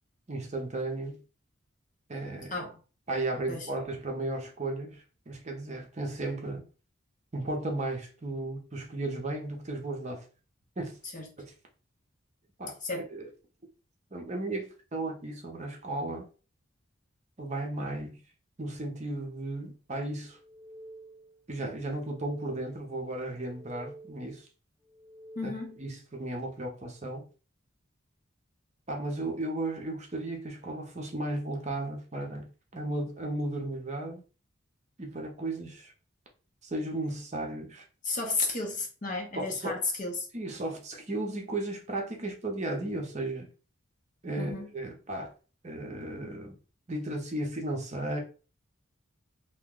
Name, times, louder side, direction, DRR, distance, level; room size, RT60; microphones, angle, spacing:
voice 1, 0.3-1.2 2.1-2.5 3.1-6.6 7.3-10.2 10.8-11.0 12.6-12.8 13.1-13.3 14.1-16.3 17.4-18.2 18.6-20.4 21.5-24.5 25.4-25.5 25.8-27.3 28.9-34.2 35.0-35.9 36.6-37.8 39.4-39.8 40.3-43.5 44.2-45.3 45.6-46.6 46.9-48.2, right 2 dB, 35° right, 0.6 m, -35 dB
sound 1, 20.3-21.4 21.8-22.9 23.3-24.4 24.9-26.0, right 1 dB, 5° right, 0.3 m, -50 dB
voice 2, 25.4-25.8 38.0-40.3 44.4-44.7, left 3 dB, 40° left, 0.7 m, -33 dB
2.7 x 2.1 x 3.7 m
head